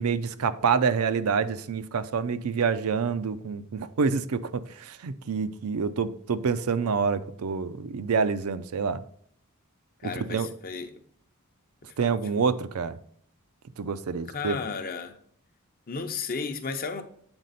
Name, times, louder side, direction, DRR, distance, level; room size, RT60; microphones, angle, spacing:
voice 1, 0.0-9.0 10.0-10.5 12.0-13.0 13.8-14.6, right 5 dB, 75° right, 0.5 m, -27 dB
voice 2, 10.0-11.0 12.0-12.2 14.3-15.2 15.9-17.0, left 5 dB, 40° left, 0.7 m, -33 dB
7.9 x 4.1 x 4.0 m
head